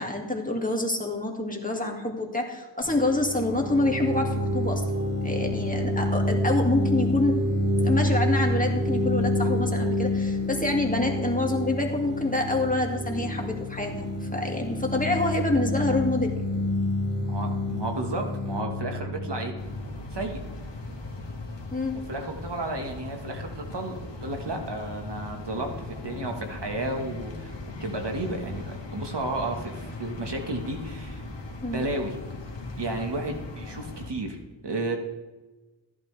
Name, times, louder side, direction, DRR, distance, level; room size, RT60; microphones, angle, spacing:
voice 1, 0.0-4.8 5.2-7.4 7.8-16.4 21.7-22.0 31.6-31.8, left 2 dB, 15° left, 1 dB, 2.1 m, -27 dB
sound 1, 2.8-20.4, left 1 dB, 25° right, 3.8 m, -28 dB
voice 2, 17.2-19.5 20.1-20.4 22.1-27.5 27.8-31.2 31.7-32.1 32.8-34.4 34.6-35.0, right 2 dB, 60° right, 4 dB, 1.6 m, -32 dB
sound 2, 19.6-34.1, left 2 dB, 65° left, 1.6 m, -39 dB
14.5 x 11.5 x 3.3 m, 1.2 s
wide cardioid pair, 50°, 46 cm